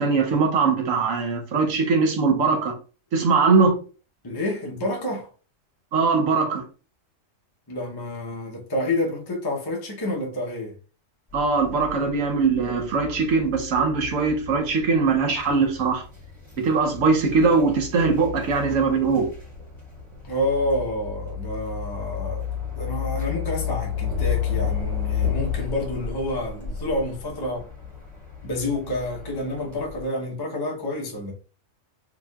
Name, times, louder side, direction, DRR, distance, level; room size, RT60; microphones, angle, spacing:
voice 1, 0.0-2.8 3.1-3.8 5.9-6.6 11.3-16.0 16.6-19.3, right 4 dB, 90° right, 1.2 m, -21 dB
voice 2, 4.2-5.3 7.7-10.7 20.2-22.5 22.8-27.7 28.4-31.3, left 1 dB, 20° left, 0.7 m, -28 dB
sound 1, 11.3-30.0, left 8 dB, 20° right, 1.9 m, -32 dB
4.9 x 3.1 x 2.3 m
omnidirectional pair, 1.3 m